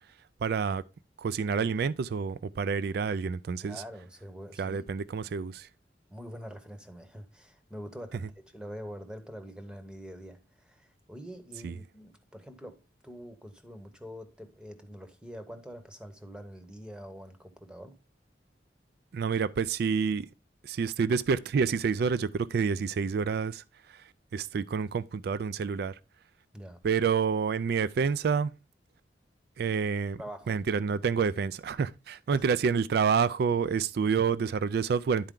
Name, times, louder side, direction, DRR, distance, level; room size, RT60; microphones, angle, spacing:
voice 1, 0.4-0.8 1.2-3.8 4.6-5.7 11.6-11.7 19.1-20.3 20.6-23.6 24.3-25.9 26.8-28.5 29.6-30.2 30.5-35.3, right 6 dB, 60° right, 0.3 m, -28 dB
voice 2, 3.6-4.9 5.2-5.5 6.1-18.0 26.5-26.8 30.2-30.6 32.3-32.5, equal, 5° right, 0.8 m, -45 dB
10.5 x 4.5 x 3.7 m
head